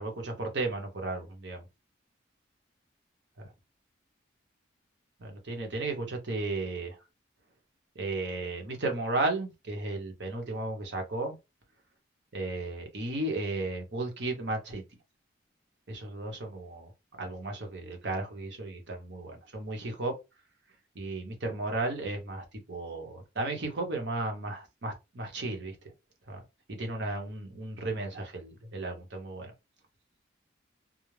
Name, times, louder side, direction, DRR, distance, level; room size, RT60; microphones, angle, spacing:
voice 1, 0.0-1.6 3.4-3.5 5.2-7.0 7.9-11.3 12.3-14.8 15.9-16.9 17.2-20.1 20.9-25.8 26.3-26.4 26.7-29.5, right 2 dB, 60° right, 0.8 m, -34 dB
2.4 x 2.1 x 3.1 m
head